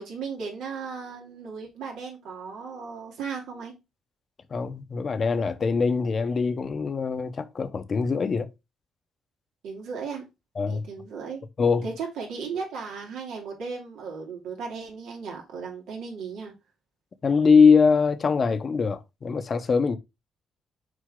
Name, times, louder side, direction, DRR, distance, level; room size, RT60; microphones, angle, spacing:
voice 1, 0.0-3.7 9.6-10.2 10.7-11.4 11.8-16.5, right 5 dB, 85° right, 2.6 m, -36 dB
voice 2, 4.5-8.5 10.6-10.9 11.6-11.9 17.2-20.0, left 5 dB, 45° left, 0.8 m, -22 dB
6.6 x 4.5 x 3.8 m
cardioid pair, 90°, 0 cm